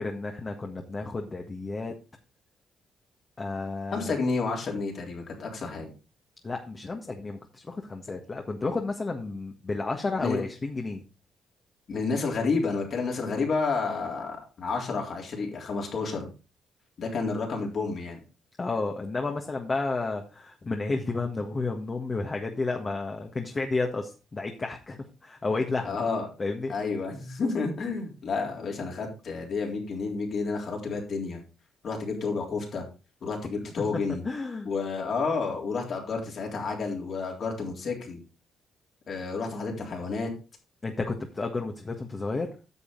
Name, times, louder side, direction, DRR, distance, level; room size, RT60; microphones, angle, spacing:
voice 1, 0.0-1.9 3.4-4.1 6.4-11.0 18.6-26.0 26.4-26.7 33.8-34.7 40.8-42.5, left 3 dB, 35° left, 2 dB, 1.6 m, -31 dB
voice 2, 3.9-5.9 10.2-10.4 11.9-16.3 17.0-18.2 25.8-26.3 26.7-31.4 31.8-32.9 33.2-34.2 34.7-38.2 39.1-40.3, left 4 dB, 60° left, 0 dB, 3.6 m, -30 dB
10.0 x 6.9 x 3.9 m, 0.32 s
supercardioid pair, 55°, 0 cm